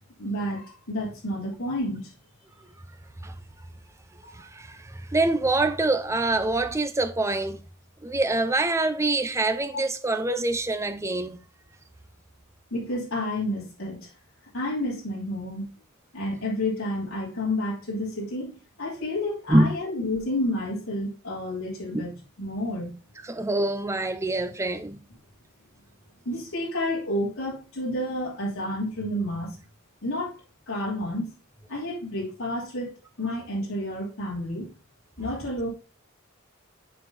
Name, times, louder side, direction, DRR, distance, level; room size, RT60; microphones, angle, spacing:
voice 1, 0.2-2.1 4.2-4.3 12.7-14.1 14.5-15.7 16.1-22.9 26.2-29.6 30.0-30.3 30.7-31.3 31.7-34.7 35.2-35.7, left 1 dB, 75° left, 3.2 m, -30 dB
voice 2, 4.3-7.6 8.0-11.4 19.5-19.8 21.9-22.0 23.2-25.0, right 2 dB, 15° right, 0.6 m, -25 dB
6.6 x 4.4 x 4.2 m
head